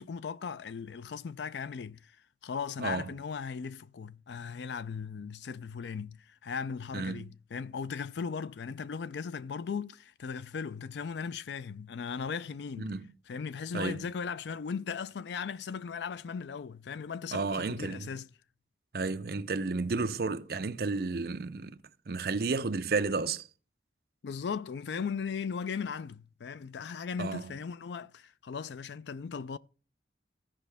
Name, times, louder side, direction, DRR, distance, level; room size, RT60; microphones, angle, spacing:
voice 1, 0.0-12.9 13.3-18.3 24.2-29.6, left 6 dB, 75° left, 0.4 m, -38 dB
voice 2, 6.9-7.3 12.8-13.1 13.7-14.0 17.3-18.1 18.9-21.8 22.1-23.5 27.2-27.4, right 4 dB, 55° right, 0.6 m, -32 dB
15.5 x 5.4 x 3.4 m
head